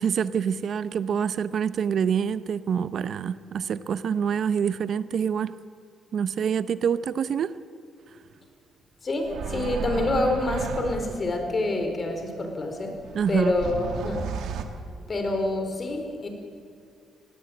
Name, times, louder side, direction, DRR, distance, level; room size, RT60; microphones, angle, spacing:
voice 1, 0.0-5.5 6.1-7.5 13.1-13.5, right 7 dB, 60° right, 14 dB, 0.7 m, -26 dB
voice 2, 9.0-13.0 13.3-14.3 15.1-16.3, left 2 dB, 35° left, 5 dB, 4.3 m, -27 dB
sound 1, 9.3-11.3 12.9-14.7, right 6 dB, 75° right, 1.7 m, -33 dB
19.5 x 17.0 x 8.6 m, 2.2 s
cardioid pair, 90°, 0 cm